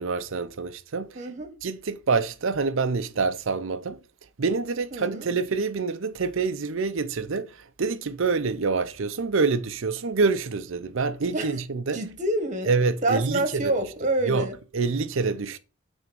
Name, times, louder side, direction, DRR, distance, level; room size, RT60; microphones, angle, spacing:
voice 1, 0.0-1.1 1.6-4.0 4.4-12.0 12.7-13.7 14.3-14.5 14.7-15.6, right 4 dB, 65° right, 0.6 m, -26 dB
voice 2, 1.1-1.5 4.9-5.3 11.3-11.6 11.9-12.7 13.0-14.6, right 2 dB, 35° right, 1.5 m, -27 dB
9.1 x 3.6 x 5.3 m
head